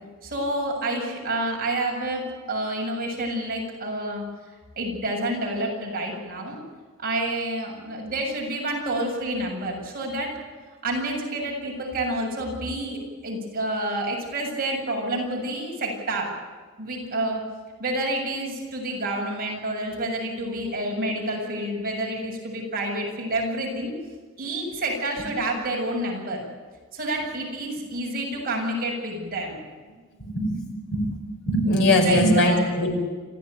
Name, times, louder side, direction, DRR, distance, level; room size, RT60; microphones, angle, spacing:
voice 1, 0.2-4.2 4.8-6.6 7.0-10.3 10.8-16.3 16.8-17.4 17.8-23.9 24.4-26.4 26.9-29.6 32.0-32.6, right 1 dB, 40° right, -1 dB, 7.4 m, -28 dB
voice 2, 30.2-30.6 30.9-31.0 31.5-33.0, left 1 dB, 55° left, 2 dB, 5.6 m, -20 dB
27.5 x 15.0 x 9.2 m, 1.5 s
head